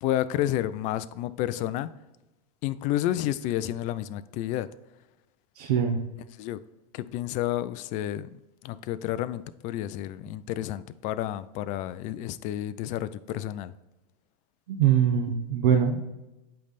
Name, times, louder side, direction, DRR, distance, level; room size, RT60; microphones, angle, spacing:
voice 1, 0.0-1.9 2.6-4.7 6.4-6.6 6.9-13.7, left 13 dB, 40° left, 15 dB, 0.4 m, -30 dB
voice 2, 5.6-6.0 14.7-16.0, right 8 dB, 75° right, 2 dB, 0.9 m, -23 dB
8.4 x 3.3 x 4.0 m, 0.98 s
hypercardioid pair, 125°, 20 cm